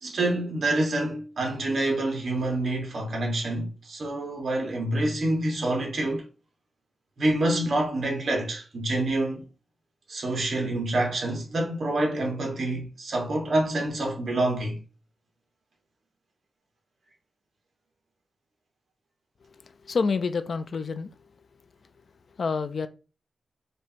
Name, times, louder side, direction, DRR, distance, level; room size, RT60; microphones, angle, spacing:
voice 1, 0.0-6.2 7.2-9.5 10.1-14.8, right 1 dB, 50° right, 1.7 m, -27 dB
voice 2, 19.4-21.3 22.3-22.9, left 4 dB, 50° left, 0.4 m, -29 dB
5.2 x 2.8 x 2.9 m
wide cardioid pair, 135°, 0 cm